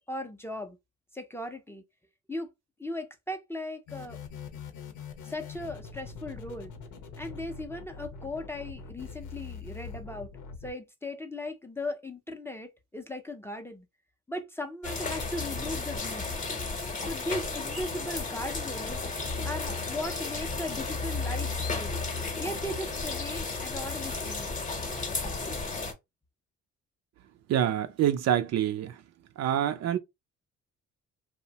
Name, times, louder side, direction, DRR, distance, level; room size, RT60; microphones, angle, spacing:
voice 1, 0.1-0.8 1.1-1.8 2.3-2.5 2.8-4.2 5.2-6.7 7.2-10.3 10.6-13.8 14.3-16.3 17.0-19.0 19.4-21.9 22.4-24.5, left 1 dB, 10° left, 0.4 m, -37 dB
sound 1, 3.9-10.7, left 5 dB, 85° left, 0.7 m, -43 dB
sound 2, 14.8-25.9, left 3 dB, 25° left, 0.8 m, -33 dB
voice 2, 27.5-29.0 29.4-30.0, right 10 dB, 60° right, 0.4 m, -26 dB
2.6 x 2.1 x 2.7 m
cardioid pair, 90°, 30 cm